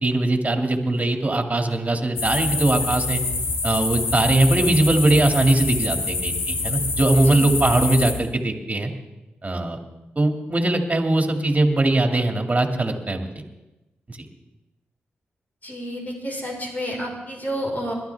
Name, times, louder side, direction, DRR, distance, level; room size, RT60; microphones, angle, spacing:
voice 1, 0.0-3.2 3.6-8.9 9.4-9.8 10.2-13.3, right 2 dB, 30° right, 4 dB, 2.4 m, -21 dB
sound 1, 2.2-8.1, left 3 dB, 75° left, 2.2 m, -26 dB
voice 2, 15.6-17.9, equal, 40° left, -1 dB, 4.8 m, -30 dB
21.0 x 12.0 x 3.5 m, 1.0 s
supercardioid pair, 45°, 4 cm